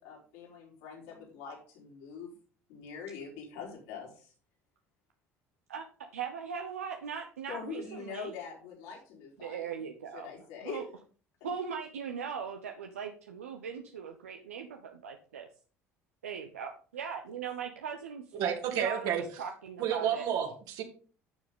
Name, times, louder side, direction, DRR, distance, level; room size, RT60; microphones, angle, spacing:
voice 1, 0.0-2.3 2.7-4.3 7.5-9.7 10.1-10.8 11.4-11.5, left 5 dB, 70° left, -2 dB, 4.1 m, -43 dB
voice 2, 6.1-8.3 9.4-10.3 10.6-10.8 11.4-15.5 16.2-18.2 18.8-20.2, right 7 dB, 80° right, 4 dB, 0.8 m, -39 dB
voice 3, 18.3-19.2 19.8-20.8, right 9 dB, 60° right, 3 dB, 2.4 m, -30 dB
11.5 x 6.8 x 3.7 m, 0.41 s
figure-of-eight pair, 60°, 8 cm